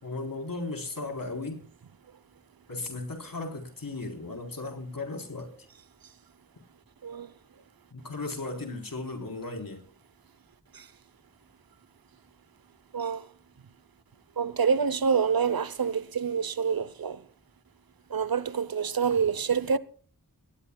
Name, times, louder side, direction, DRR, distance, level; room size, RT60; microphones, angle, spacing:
voice 1, 0.0-1.6 2.7-5.5 7.9-9.8, left 3 dB, 70° left, 3.8 m, -36 dB
voice 2, 12.9-13.2 14.4-17.2 18.1-19.8, right 6 dB, 90° right, 0.8 m, -27 dB
18.5 x 18.0 x 2.3 m
wide cardioid pair, 50°, 35 cm